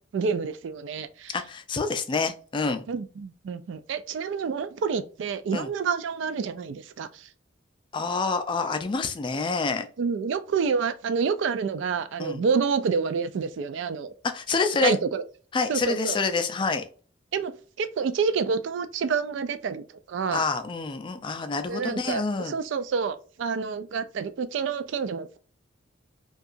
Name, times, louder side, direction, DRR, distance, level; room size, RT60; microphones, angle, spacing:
voice 1, 0.1-1.4 2.9-7.3 10.0-14.1 14.8-15.2 15.7-16.2 17.3-17.5 17.8-20.4 21.7-25.4, right 5 dB, 75° right, 0.3 m, -28 dB
voice 2, 1.3-2.8 5.5-5.7 7.9-9.9 12.2-12.4 14.3-15.0 15.5-16.8 20.3-22.6, left 4 dB, 25° left, 0.3 m, -27 dB
2.7 x 2.3 x 2.5 m
head